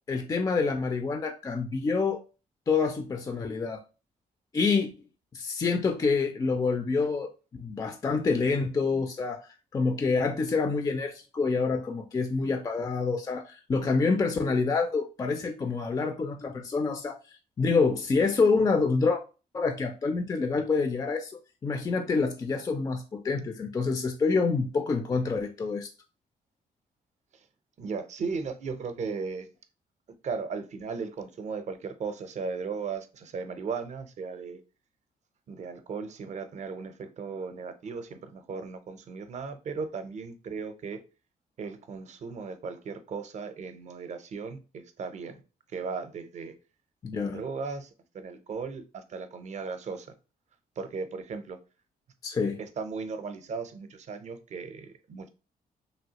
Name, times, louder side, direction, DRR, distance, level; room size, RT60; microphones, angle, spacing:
voice 1, 0.1-2.2 2.7-3.8 4.5-4.9 5.3-19.2 19.5-21.3 21.6-25.9 47.0-47.4 52.2-52.6, left 4 dB, 25° left, 0.3 m, -27 dB
voice 2, 27.8-29.5 30.2-34.6 35.5-41.0 41.6-45.4 45.7-46.5 47.1-47.9 48.1-50.1 50.8-51.6 52.6-55.3, right 5 dB, 50° right, 0.5 m, -36 dB
3.0 x 2.7 x 2.8 m
cardioid pair, 115°, 15 cm